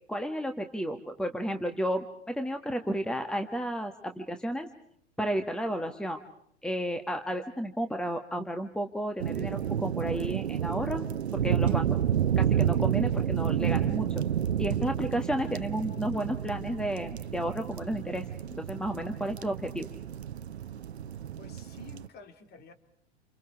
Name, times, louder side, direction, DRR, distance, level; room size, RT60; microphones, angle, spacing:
voice 1, 0.1-4.7 5.2-6.2 6.6-11.0 11.3-12.0 12.4-14.2 14.6-18.3 18.5-19.9, equal, ahead, 7 dB, 1.6 m, -32 dB
sound 1, 9.2-22.1, right 9 dB, 70° right, 0.9 m, -30 dB
voice 2, 21.4-22.7, left 5 dB, 30° left, 7 dB, 3.3 m, -50 dB
29.0 x 28.5 x 4.7 m, 0.67 s
figure-of-eight pair, 95°, 33 cm